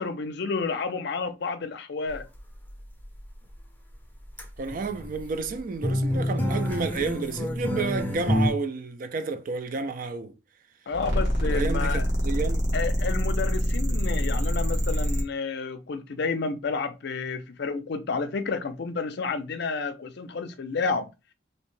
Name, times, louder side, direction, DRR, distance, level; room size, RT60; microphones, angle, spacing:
voice 1, 0.0-2.3 10.9-12.0 12.7-21.1, left 4 dB, 65° left, 0.5 m, -30 dB
sound 1, 2.1-2.4 3.0-3.1 4.4-5.2 5.4-5.5 5.7-8.5, left 1 dB, 10° left, 0.6 m, -27 dB
voice 2, 4.6-10.4 11.4-12.7, right 4 dB, 50° right, 0.4 m, -31 dB
sound 2, 10.9-15.2, equal, 70° right, 1.0 m, -25 dB
2.8 x 2.1 x 3.1 m
head